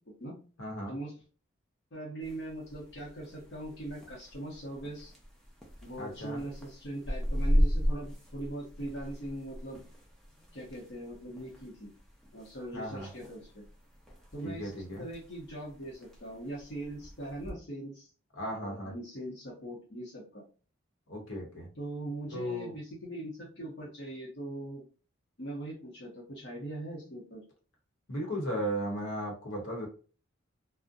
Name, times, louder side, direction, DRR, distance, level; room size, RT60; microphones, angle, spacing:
voice 1, 0.6-0.9 6.0-6.4 12.7-13.1 14.4-15.0 18.4-18.9 21.1-21.7 22.3-22.7 28.1-29.9, right 1 dB, 80° left, 0 dB, 0.9 m, -36 dB
voice 2, 1.9-5.1 5.8-9.8 10.5-11.9 12.3-13.7 14.3-14.7 15.0-18.1 18.5-20.4 21.8-24.9 25.4-27.4, right 1 dB, 55° left, -3 dB, 0.7 m, -41 dB
sound 1, 2.2-17.5, equal, ahead, 0.4 m, -36 dB
2.5 x 2.1 x 2.5 m, 0.37 s
head